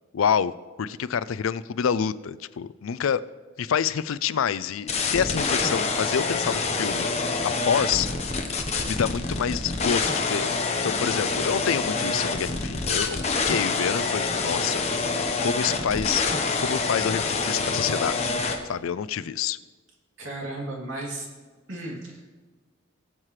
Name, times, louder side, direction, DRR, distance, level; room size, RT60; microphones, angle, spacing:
voice 1, 0.1-0.5 0.8-3.2 3.6-8.1 8.8-14.8 15.4-16.2 16.6-19.6, left 7 dB, 85° left, 16 dB, 0.4 m, -27 dB
sound 1, 4.9-18.6, left 4 dB, 30° left, 1.1 m, -26 dB
voice 2, 11.0-11.4 20.2-21.3 21.7-22.3, right 1 dB, 75° right, -2 dB, 2.9 m, -35 dB
20.0 x 7.5 x 3.2 m, 1.4 s
head